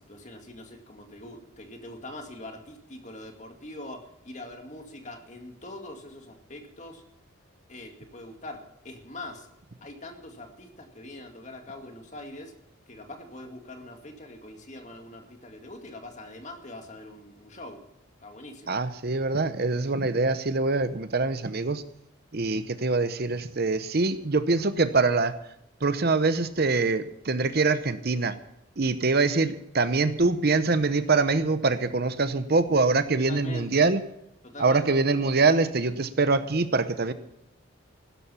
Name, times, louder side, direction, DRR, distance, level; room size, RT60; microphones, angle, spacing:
voice 1, 0.0-7.0 7.7-9.5 9.8-12.5 12.9-17.8 18.2-18.8 33.3-33.8 34.4-34.8, left 1 dB, 35° left, 4 dB, 2.2 m, -43 dB
voice 2, 18.7-21.8 22.3-25.3 25.8-28.4 28.8-34.0 34.6-37.1, right 3 dB, 50° right, 12 dB, 0.8 m, -24 dB
16.0 x 12.5 x 5.7 m, 0.80 s
head